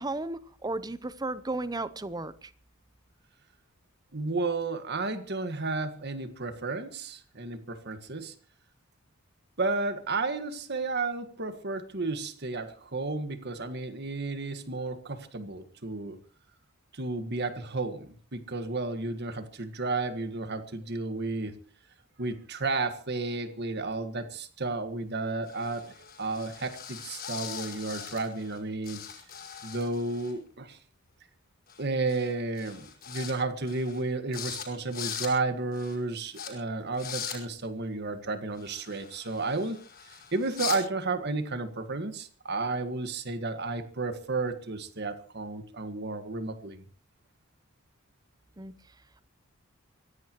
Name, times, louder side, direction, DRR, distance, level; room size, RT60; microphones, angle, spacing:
voice 1, 0.0-2.5 48.6-48.7, right 2 dB, 20° right, 15 dB, 0.8 m, -34 dB
voice 2, 4.1-8.3 9.6-16.2 16.9-21.5 22.2-29.0 29.6-30.8 31.8-39.8 40.3-46.8, right 3 dB, 50° right, 9 dB, 1.7 m, -32 dB
sound 1, 25.5-28.6 28.8-30.3 31.7-32.3 32.6-33.3 33.7-34.0 34.3-34.7 34.9-35.3 35.7-36.0 36.3-36.5 36.9-37.4 38.6-40.8, left 8 dB, 45° left, 5.5 m, -40 dB
24.5 x 16.5 x 3.1 m, 0.41 s
head